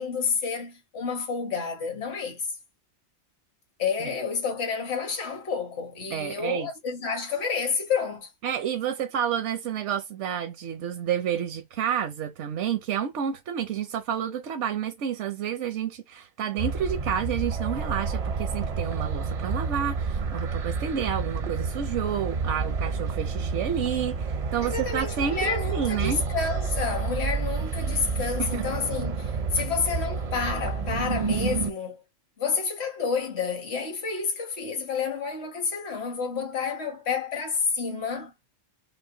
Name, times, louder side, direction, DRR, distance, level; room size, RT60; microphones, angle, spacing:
voice 1, 0.0-2.4 3.8-8.3 24.6-32.0 32.4-38.3, left 5 dB, 65° left, 1.5 m, -29 dB
voice 2, 6.1-6.7 8.4-26.2 28.4-28.6 29.6-29.7, right 8 dB, 80° right, 0.9 m, -30 dB
sound 1, 16.6-31.7, right 5 dB, 45° right, 0.5 m, -29 dB
5.7 x 2.0 x 3.8 m
omnidirectional pair, 1.2 m